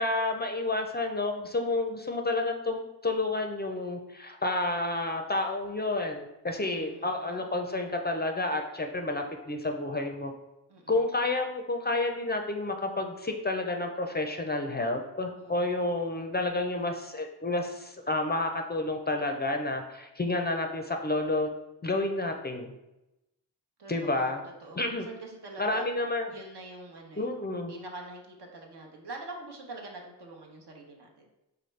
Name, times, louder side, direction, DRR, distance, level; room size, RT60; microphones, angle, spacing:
voice 1, 0.0-10.3 10.9-21.5 21.8-22.7 23.9-24.4 24.8-25.1 25.6-26.3 27.2-27.7, left 2 dB, 25° left, 4 dB, 0.4 m, -30 dB
voice 2, 6.8-7.4 10.7-11.0 15.3-15.9 23.8-25.9 26.3-27.3 27.7-31.3, right 2 dB, 70° right, 1 dB, 0.9 m, -45 dB
4.8 x 2.3 x 3.2 m, 0.94 s
cardioid pair, 50°, 42 cm